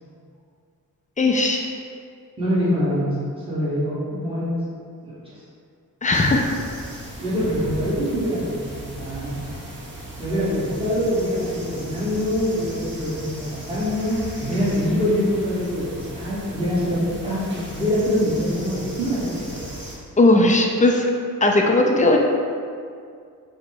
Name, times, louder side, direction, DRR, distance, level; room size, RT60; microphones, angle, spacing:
voice 1, 1.2-1.6 6.0-6.5 20.2-21.0 21.4-22.2, left 2 dB, 25° left, 1 dB, 0.4 m, -17 dB
voice 2, 2.4-4.6 5.0-5.3 7.2-9.4 10.2-19.7, equal, 15° right, -9 dB, 1.2 m, -24 dB
sound 1, 6.1-19.9, right 1 dB, 35° right, 1.0 m, -37 dB
5.0 x 2.1 x 4.5 m, 2.3 s
wide cardioid pair, 125°, 33 cm